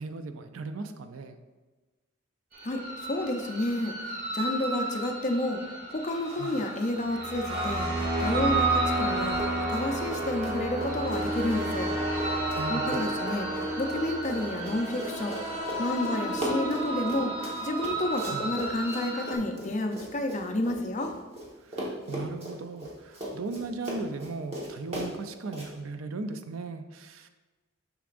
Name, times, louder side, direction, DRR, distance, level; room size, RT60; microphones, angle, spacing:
voice 1, 0.0-1.4 6.4-6.5 12.6-13.1 18.3-18.5 21.6-27.3, right 3 dB, 90° right, 9 dB, 0.5 m, -37 dB
sound 1, 2.5-19.3, right 2 dB, 45° right, 1.8 m, -31 dB
voice 2, 2.6-5.6 5.9-7.9 8.2-11.9 12.7-15.4 15.8-17.3 17.6-21.1, left 1 dB, 35° left, 4 dB, 0.6 m, -30 dB
sound 2, 6.0-6.8 7.4-8.3 8.9-9.6 9.9-10.5, equal, 70° right, 1.4 m, -45 dB
Run, 9.3-9.8 10.1-21.5 21.7-25.7, equal, 30° right, 1.3 m, -38 dB
7.0 x 5.9 x 2.5 m, 1.2 s
head